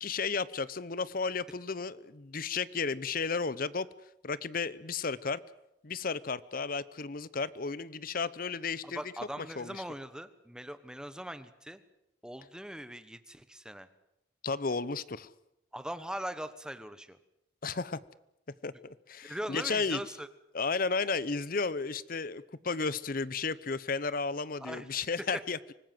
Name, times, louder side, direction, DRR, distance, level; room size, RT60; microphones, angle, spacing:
voice 1, 0.0-3.9 4.2-5.4 5.8-9.0 9.4-9.8 14.4-15.3 17.6-18.0 18.6-18.7 19.1-20.0 20.5-25.7, left 4 dB, 50° left, 18 dB, 0.8 m, -33 dB
voice 2, 8.8-11.8 12.2-13.9 15.7-17.2 19.2-20.3 24.6-24.9, equal, 5° right, 11 dB, 1.2 m, -41 dB
25.0 x 19.5 x 7.7 m, 0.85 s
head